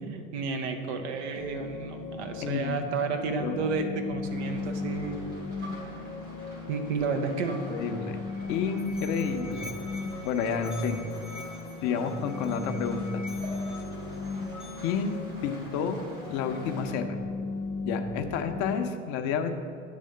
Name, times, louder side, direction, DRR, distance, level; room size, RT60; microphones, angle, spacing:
voice 1, 0.0-5.2 6.7-7.6, right 4 dB, 60° right, 6 dB, 0.8 m, -31 dB
sound 1, 1.4-18.8, left 3 dB, 70° left, 1.0 m, -37 dB
voice 2, 2.4-2.7 3.4-3.6 7.7-8.2 8.5-9.7 10.2-11.0 11.8-13.2 14.8-16.0 16.3-17.2 17.9-19.5, left 6 dB, 45° left, 6 dB, 0.7 m, -30 dB
Rain, 4.2-16.9, right 1 dB, 85° right, 2.2 m, -48 dB
Musical instrument, 8.3-15.2, left 2 dB, ahead, 0.6 m, -47 dB
9.4 x 3.5 x 6.4 m, 2.2 s
figure-of-eight pair, 70°, 40 cm